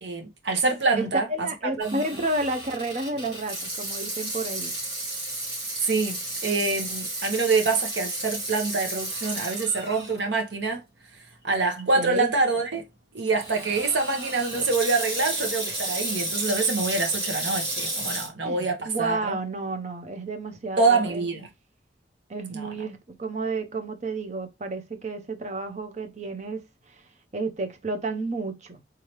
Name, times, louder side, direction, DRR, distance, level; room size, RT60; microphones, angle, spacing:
voice 1, 0.0-1.5 1.8-2.0 5.8-10.8 11.4-12.8 13.1-19.3 20.8-21.5 22.5-22.7, right 3 dB, 85° right, 0.9 m, -25 dB
voice 2, 0.9-4.7 11.8-12.3 18.4-21.2 22.3-27.0 27.3-28.8, right 2 dB, 40° right, 0.6 m, -31 dB
Water tap faucet / Sink (filling or washing), 1.8-10.2 10.7-10.8 11.5-11.8 13.4-18.3, right 1 dB, 70° right, 1.8 m, -32 dB
3.7 x 3.2 x 2.9 m
head